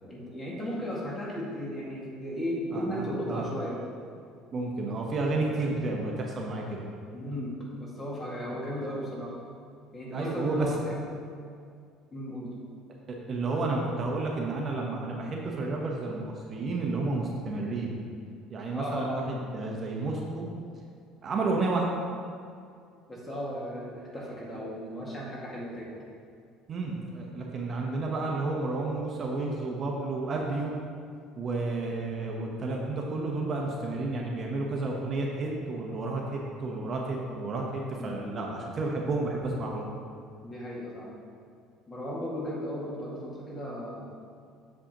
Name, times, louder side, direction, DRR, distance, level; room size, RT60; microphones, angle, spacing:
voice 1, 0.0-3.8 7.1-9.4 9.9-11.0 12.1-12.5 18.7-19.2 23.1-25.9 37.9-38.3 40.4-41.1 41.9-44.1, equal, 25° left, -5 dB, 1.9 m, -35 dB
voice 2, 2.7-3.5 4.5-6.8 8.5-8.6 10.1-10.7 13.1-17.9 18.5-20.5 21.2-21.9 26.7-30.7 31.4-39.9, right 3 dB, 35° right, -1 dB, 0.9 m, -31 dB
7.6 x 7.2 x 2.9 m, 2.3 s
cardioid pair, 125°, 0 cm